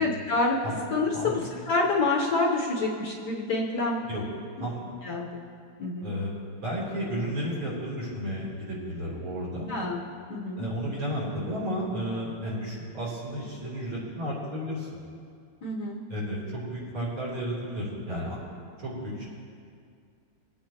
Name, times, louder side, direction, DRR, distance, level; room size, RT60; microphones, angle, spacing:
voice 1, 0.0-0.6 0.9-4.0 5.0-5.4 5.8-6.1 9.7-10.0 10.3-10.6 15.6-16.0, left 3 dB, 55° left, -2 dB, 1.5 m, -27 dB
voice 2, 6.0-6.3 6.6-9.7 10.6-14.9 16.1-18.4 18.8-19.3, equal, 65° right, -6 dB, 4.1 m, -32 dB
22.5 x 8.6 x 2.9 m, 2.3 s
omnidirectional pair, 2.4 m